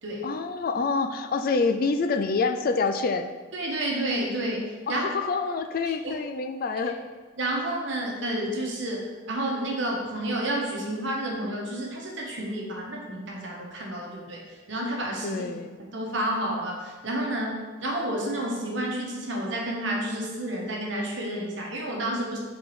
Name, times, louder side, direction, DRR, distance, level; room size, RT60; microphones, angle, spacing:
voice 1, 0.2-3.3 4.9-7.0 15.2-15.8, left 4 dB, 45° left, 8 dB, 0.3 m, -27 dB
voice 2, 3.5-5.1 6.0-6.1 6.8-6.9 7.4-15.4 15.8-22.4, right 1 dB, 65° right, -2 dB, 1.3 m, -30 dB
4.7 x 4.0 x 5.0 m, 1.4 s
head